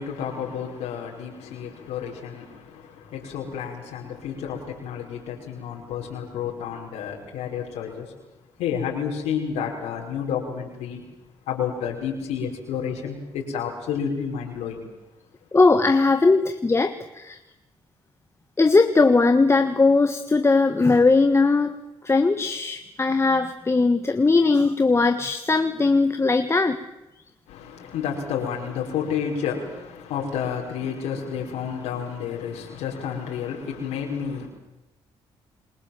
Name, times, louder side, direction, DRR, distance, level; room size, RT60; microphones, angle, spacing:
voice 1, 0.0-8.1 8.6-11.0 11.5-14.9 27.5-34.5, left 7 dB, 85° left, 5.4 m, -30 dB
voice 2, 15.5-17.4 18.6-21.7 22.0-26.8, left 3 dB, 25° left, 1.6 m, -19 dB
27.5 x 22.0 x 7.5 m
supercardioid pair, 70°, 11 cm